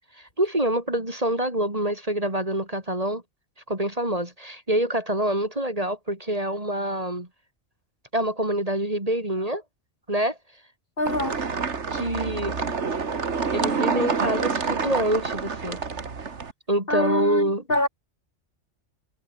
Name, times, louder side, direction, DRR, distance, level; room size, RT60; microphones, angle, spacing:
voice 1, 0.4-3.2 3.7-7.3 8.1-9.6 10.1-10.4 11.9-12.8 13.5-15.8 16.7-17.6, right 1 dB, 30° right, 4.1 m, -26 dB
voice 2, 11.0-11.4 16.9-17.9, left 1 dB, 45° left, 5.4 m, -25 dB
sound 1, 11.1-16.5, right 5 dB, 65° right, 2.1 m, -27 dB
omnidirectional pair, 1.3 m